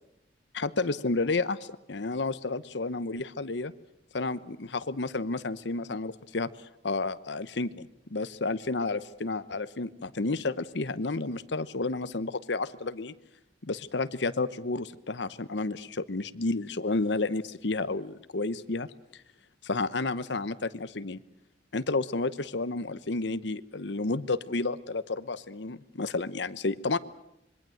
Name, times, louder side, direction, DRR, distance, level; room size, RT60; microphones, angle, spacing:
voice 1, 0.5-3.7 4.1-6.5 6.8-13.1 13.6-18.9 19.6-21.2 21.7-27.0, left 3 dB, 70° left, 14 dB, 0.9 m, -31 dB
26.0 x 22.5 x 7.9 m, 0.80 s
head